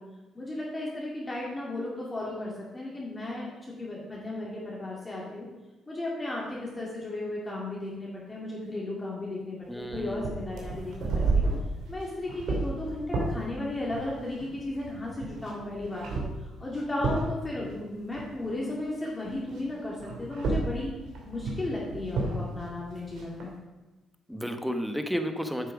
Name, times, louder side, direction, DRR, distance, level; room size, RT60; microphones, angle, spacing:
voice 1, 0.3-5.5 5.9-11.4 11.9-20.9 21.2-23.5, left 2 dB, 20° left, -5 dB, 2.2 m, -35 dB
voice 2, 9.7-10.3 24.3-25.7, equal, ahead, 6 dB, 1.0 m, -32 dB
sound 1, 9.8-19.0 19.2-23.5, right 3 dB, 75° right, 2.7 m, -33 dB
9.0 x 6.5 x 4.9 m, 1.1 s
cardioid pair, 90°, 0 cm